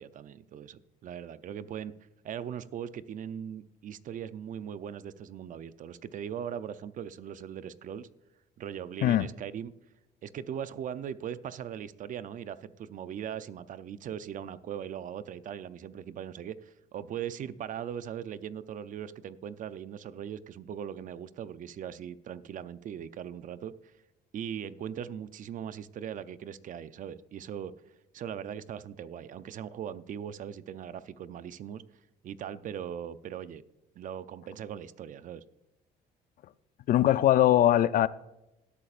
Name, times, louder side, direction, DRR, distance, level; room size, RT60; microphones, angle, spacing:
voice 1, 0.0-1.9 2.2-8.1 8.6-9.7 10.2-23.9 24.3-27.7 28.1-31.8 32.2-33.6 34.0-35.4, right 9 dB, 50° right, 0.5 m, -39 dB
voice 2, 36.9-38.1, left 12 dB, 55° left, 0.4 m, -21 dB
17.5 x 8.6 x 2.5 m
cardioid pair, 110°, 17 cm